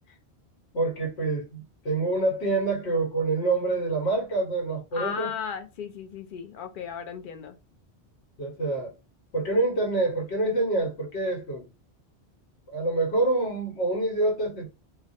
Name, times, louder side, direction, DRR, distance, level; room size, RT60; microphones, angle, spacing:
voice 1, 0.7-5.3 8.4-8.9 9.3-11.6 12.7-14.7, right 2 dB, 85° left, 1.2 m, -26 dB
voice 2, 4.9-7.6, left 7 dB, 60° left, 0.6 m, -35 dB
2.4 x 2.0 x 2.5 m
omnidirectional pair, 1.1 m